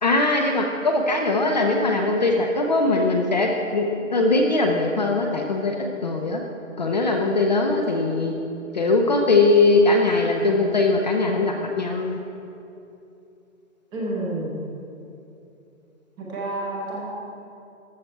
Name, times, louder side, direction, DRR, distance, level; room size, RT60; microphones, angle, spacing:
voice 1, 0.0-5.8 6.0-6.4 6.8-8.3 8.7-12.2, left 2 dB, 35° left, 1 dB, 0.5 m, -21 dB
voice 2, 13.9-14.6 16.2-17.1, right 1 dB, 10° right, -4 dB, 0.7 m, -29 dB
13.5 x 5.8 x 4.4 m, 2.8 s
hypercardioid pair, 145°, 41 cm